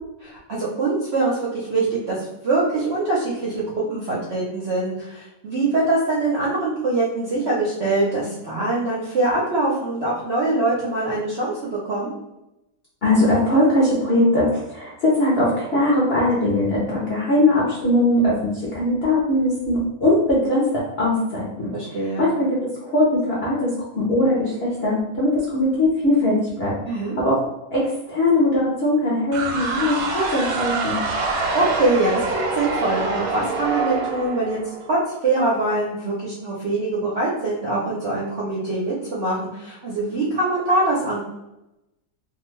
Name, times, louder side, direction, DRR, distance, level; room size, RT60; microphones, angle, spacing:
voice 1, 0.2-3.6 3.9-12.1 21.7-22.3 26.9-27.2 31.3-34.6 34.9-41.2, right 2 dB, 65° right, -6 dB, 0.6 m, -23 dB
voice 2, 13.0-21.7 22.2-22.6 22.8-26.7 27.2-27.4 27.7-31.0, left 1 dB, 60° left, -6 dB, 0.6 m, -20 dB
sound 1, 29.3-35.1, right 3 dB, 85° right, 1.2 m, -26 dB
2.7 x 2.3 x 3.1 m, 0.91 s
omnidirectional pair, 1.8 m